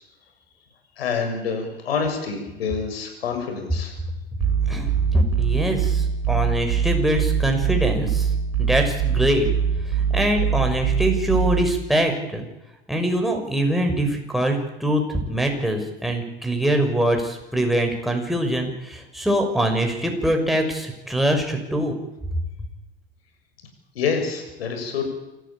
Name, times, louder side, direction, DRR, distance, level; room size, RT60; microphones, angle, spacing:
voice 1, 1.0-3.9 24.0-25.1, left 5 dB, 80° left, 4 dB, 7.0 m, -27 dB
sound 1, 4.4-11.8, right 7 dB, 50° right, 6.8 m, -23 dB
voice 2, 4.7-8.3 8.6-9.5 10.1-12.5 12.9-21.9, right 1 dB, ahead, 3 dB, 6.3 m, -23 dB
27.5 x 14.5 x 8.9 m, 0.98 s
hypercardioid pair, 90°, 30 cm